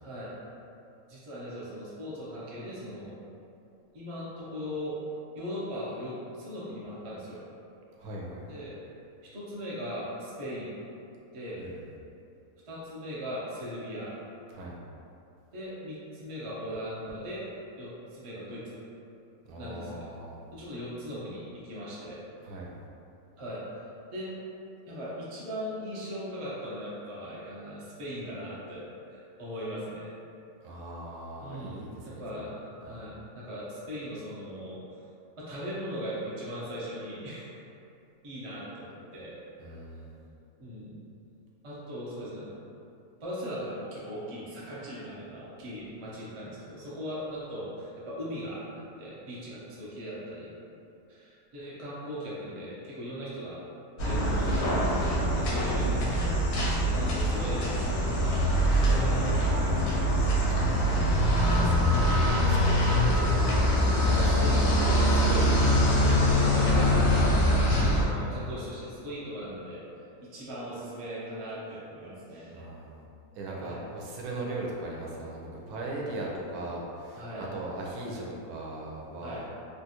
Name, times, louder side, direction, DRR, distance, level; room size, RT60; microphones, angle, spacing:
voice 1, 0.0-0.3 1.1-3.2 3.9-5.0 5.3-7.4 8.5-8.8 9.2-10.7 11.3-11.7 12.7-14.2 15.5-17.5 17.8-18.8 19.6-20.1 20.5-22.2 23.4-23.6 24.1-24.4 24.9-28.8 29.1-30.1 31.4-35.0 35.4-37.5 38.2-39.4 40.6-41.0 41.6-42.5 43.2-48.6 49.0-50.5 51.1-53.6 54.0-54.9 55.3-56.4 56.8-57.7 58.0-58.4 58.9-60.1 61.3-62.6 64.0-65.5 65.8-69.8 70.2-72.6 73.6-73.8 77.1-77.5 79.2-79.5, equal, 45° right, -8 dB, 0.4 m, -39 dB
voice 2, 8.0-8.4 11.6-11.8 14.5-14.8 19.5-20.4 22.4-22.7 30.6-32.2 32.8-33.0 39.6-40.2 56.7-56.9 60.5-63.2 64.5-64.6 72.5-73.1 73.3-79.5, right 2 dB, 80° right, -3 dB, 1.1 m, -39 dB
sound 1, 54.0-68.0, equal, 85° left, 1.1 m, -24 dB
3.2 x 2.3 x 2.8 m, 2.7 s
omnidirectional pair, 1.6 m